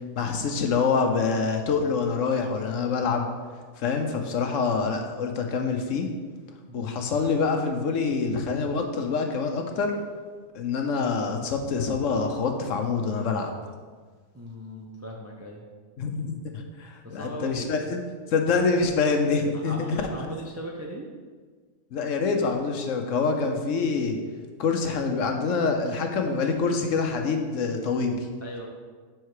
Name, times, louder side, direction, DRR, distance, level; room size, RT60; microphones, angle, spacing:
voice 1, 0.2-3.3 3.8-6.1 6.7-9.9 10.5-13.5 16.0-18.0 18.3-20.0 21.9-24.2 24.6-28.3, left 4 dB, 70° left, 4 dB, 1.1 m, -26 dB
voice 2, 14.3-15.6 17.0-17.7 19.5-21.1 28.4-28.7, equal, 25° right, -1 dB, 0.3 m, -38 dB
5.5 x 4.7 x 4.7 m, 1.5 s
omnidirectional pair, 1.4 m